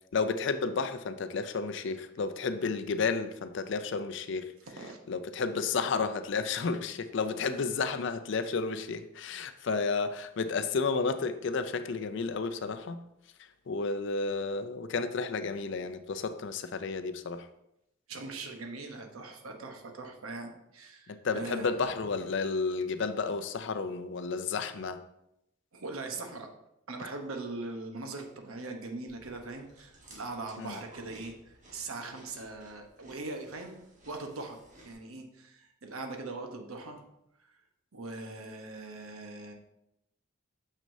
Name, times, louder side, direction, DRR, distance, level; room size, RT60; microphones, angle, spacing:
voice 1, 0.1-4.5 5.1-13.0 13.7-17.5 21.1-25.0 30.6-30.8, left 4 dB, 60° left, 10 dB, 0.4 m, -32 dB
voice 2, 18.1-21.9 25.7-26.5 26.9-33.8 34.1-37.0 37.9-39.5, right 3 dB, 90° right, 4 dB, 1.0 m, -41 dB
Chewing mastication, 29.1-34.9, right 1 dB, 35° right, 1.4 m, -56 dB
6.5 x 6.1 x 2.7 m, 0.83 s
head